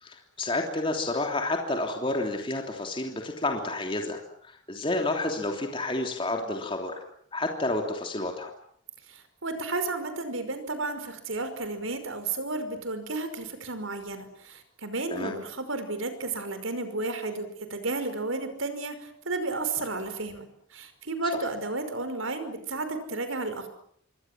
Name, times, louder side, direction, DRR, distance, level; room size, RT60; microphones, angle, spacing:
voice 1, 0.0-4.2 4.5-7.0 7.3-8.5 15.1-15.3, left 2 dB, 25° left, 2 dB, 3.2 m, -30 dB
voice 2, 9.1-23.7, right 3 dB, 80° right, 9 dB, 5.4 m, -32 dB
27.0 x 24.5 x 7.6 m, 0.64 s
head